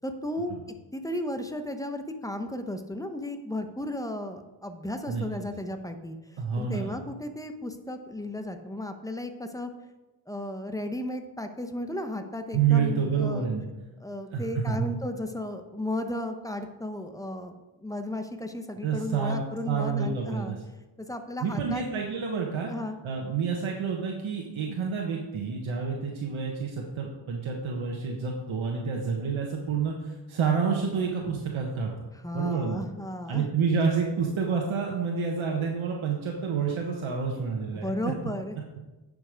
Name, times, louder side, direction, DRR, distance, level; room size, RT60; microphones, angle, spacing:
voice 1, 0.0-0.5 0.9-9.7 10.3-13.5 14.0-17.5 17.8-20.5 21.0-21.8 22.6-23.0 32.1-33.5 37.7-38.6, left 1 dB, 5° left, 7 dB, 0.8 m, -34 dB
voice 2, 6.4-6.9 12.5-13.6 14.3-14.9 18.8-20.6 21.4-22.7 23.0-31.9 32.3-32.8 33.3-37.9, right 6 dB, 90° right, 0 dB, 1.2 m, -28 dB
9.6 x 5.3 x 5.1 m, 1.1 s
wide cardioid pair, 90°, 46 cm